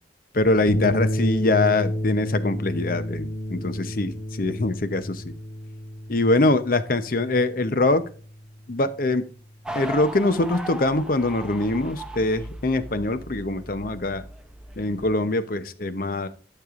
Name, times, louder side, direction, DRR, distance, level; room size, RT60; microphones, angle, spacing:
voice 1, 0.3-5.3 6.1-8.0 8.7-9.2 9.7-14.2 14.8-16.3, left 2 dB, 50° left, 11 dB, 0.7 m, -23 dB
sound 1, 0.7-9.2, equal, 85° left, 2.3 m, -31 dB
sound 2, 9.6-15.1, right 1 dB, 5° right, 0.6 m, -38 dB
12.5 x 6.7 x 2.5 m, 0.39 s
head